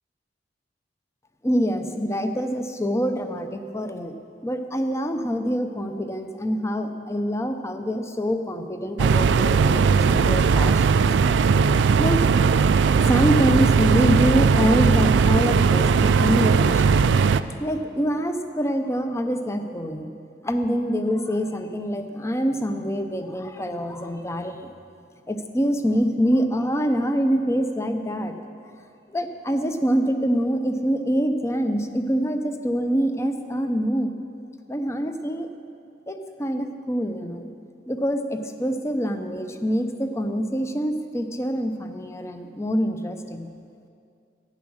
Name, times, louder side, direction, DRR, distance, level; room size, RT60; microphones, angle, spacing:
voice 1, 1.4-4.2 4.4-11.1 12.0-12.2 13.0-17.2 17.6-20.1 20.4-24.7 25.3-28.4 29.1-34.1 34.7-35.5 36.1-37.5 37.9-43.5, equal, 15° left, 7 dB, 0.6 m, -25 dB
sound 1, 9.0-17.4, right 5 dB, 90° right, 0.3 m, -18 dB
11.0 x 9.5 x 6.3 m, 2.4 s
head